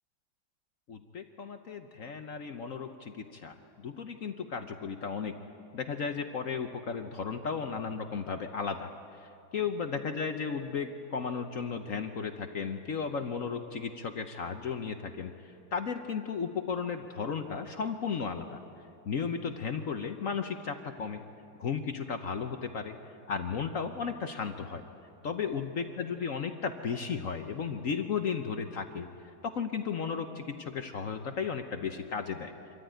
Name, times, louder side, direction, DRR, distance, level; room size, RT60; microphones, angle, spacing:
voice 1, 0.9-5.3 5.7-8.9 9.2-18.6 19.1-21.2 21.6-22.9 23.3-24.8 25.2-29.1 29.4-32.5, left 6 dB, 55° left, 6 dB, 1.0 m, -34 dB
25.0 x 14.0 x 9.1 m, 2.7 s
omnidirectional pair, 2.1 m